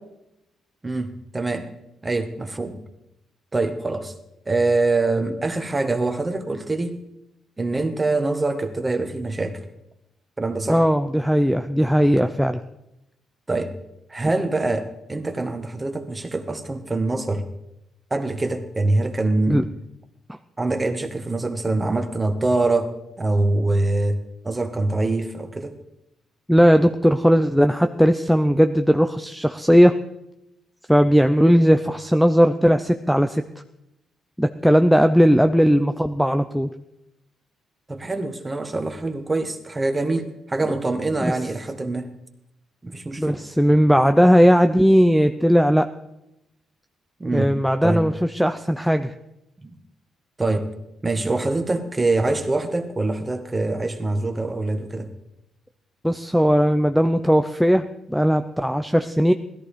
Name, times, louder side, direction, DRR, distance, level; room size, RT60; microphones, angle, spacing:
voice 1, 0.8-1.7 2.0-2.8 3.5-4.1 4.5-7.0 7.6-9.6 10.4-10.8 13.5-13.7 14.1-17.4 18.1-19.7 20.6-24.2 24.4-25.8 37.9-42.1 42.8-43.4 47.2-48.1 49.6-49.8 50.4-50.7 51.0-55.1, right 2 dB, 20° right, 7 dB, 1.8 m, -24 dB
voice 2, 10.7-12.6 19.5-19.6 26.5-30.0 30.9-33.4 34.4-36.7 41.2-41.3 43.2-45.9 47.3-49.1 56.0-59.3, equal, ahead, 7 dB, 0.7 m, -17 dB
16.5 x 14.0 x 5.1 m, 0.86 s
cardioid pair, 90°, 0 cm